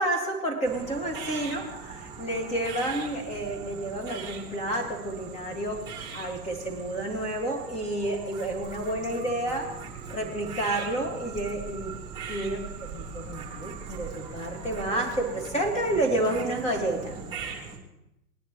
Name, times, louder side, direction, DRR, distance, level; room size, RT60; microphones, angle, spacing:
voice 1, 0.0-9.7 10.1-12.0 12.3-17.2, right 1 dB, 15° left, 2 dB, 2.6 m, -30 dB
sound 1, 0.6-17.8, right 6 dB, 10° right, 2.7 m, -40 dB
19.5 x 10.5 x 3.4 m, 0.88 s
hypercardioid pair, 115°, 46 cm